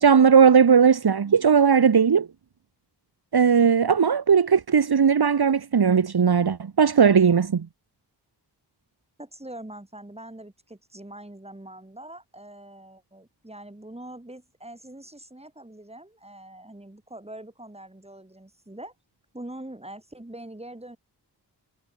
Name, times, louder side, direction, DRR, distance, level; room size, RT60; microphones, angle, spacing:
voice 1, 0.0-2.3 3.3-7.7, right 6 dB, 65° right, 1.5 m, -18 dB
voice 2, 9.2-18.9 19.3-21.0, right 1 dB, 15° right, 7.8 m, -43 dB
wide cardioid pair, 105°, 42 cm